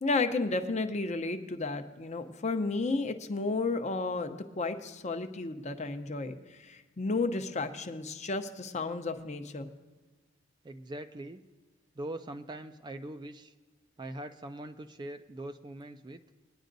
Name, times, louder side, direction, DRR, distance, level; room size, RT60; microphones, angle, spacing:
voice 1, 0.0-9.7, left 3 dB, 35° left, 8 dB, 0.7 m, -32 dB
voice 2, 10.6-11.4 12.0-13.5 14.0-16.2, right 1 dB, 20° right, 8 dB, 0.4 m, -42 dB
20.5 x 10.0 x 2.6 m, 1.3 s
head